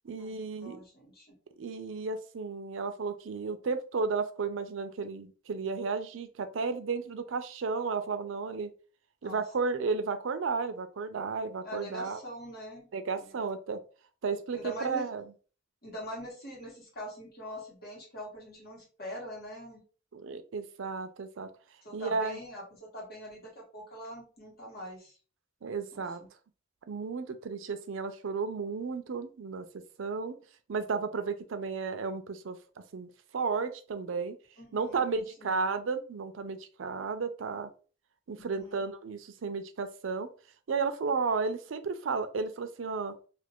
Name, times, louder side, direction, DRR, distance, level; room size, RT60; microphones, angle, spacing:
voice 1, 0.0-0.8 1.6-8.7 9.2-12.2 12.9-13.8 14.2-15.2 20.1-21.5 21.9-22.4 25.6-26.2 26.9-29.7 30.0-30.4 30.7-32.6 32.9-34.4 34.7-37.7 38.3-40.3 40.7-43.2, right 4 dB, 85° right, 9 dB, 0.5 m, -33 dB
voice 2, 0.6-1.4 9.2-9.4 11.6-12.9 13.2-13.5 14.5-15.1 15.8-19.8 21.8-25.1 25.9-26.3 34.6-35.0 35.4-35.6 38.4-38.9, equal, 55° left, -3 dB, 1.5 m, -43 dB
2.8 x 2.5 x 3.5 m, 0.37 s
head